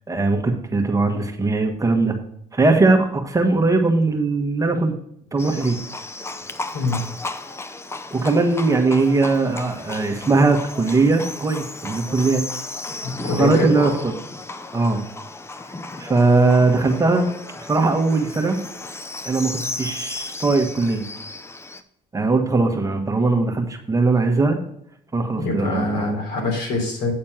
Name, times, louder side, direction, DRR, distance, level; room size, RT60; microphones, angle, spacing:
voice 1, 0.1-2.2 2.5-4.9 5.3-5.8 8.1-12.4 13.2-14.2 14.7-15.0 16.0-17.3 17.6-18.6 19.2-21.0 22.1-24.6 25.1-26.1, right 3 dB, 20° right, 4 dB, 1.3 m, -20 dB
Livestock farm animals working animals, 5.4-21.8, left 2 dB, 15° left, 0.5 m, -34 dB
voice 2, 13.0-14.0 25.4-27.1, left 2 dB, 85° left, -1 dB, 3.5 m, -24 dB
8.8 x 4.3 x 7.3 m, 0.71 s
cardioid pair, 110°, 17 cm